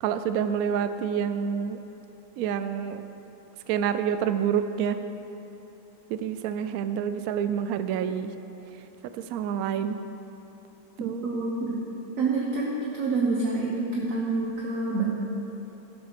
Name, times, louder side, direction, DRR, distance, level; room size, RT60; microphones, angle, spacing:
voice 1, 0.0-1.8 2.4-3.0 3.7-5.0 6.1-8.3 9.3-10.0 11.0-11.2, right 8 dB, 85° right, 10 dB, 0.8 m, -27 dB
voice 2, 11.2-11.8 12.2-15.0, right 3 dB, 50° right, -4 dB, 1.4 m, -27 dB
12.5 x 7.5 x 5.9 m, 3.0 s
omnidirectional pair, 2.2 m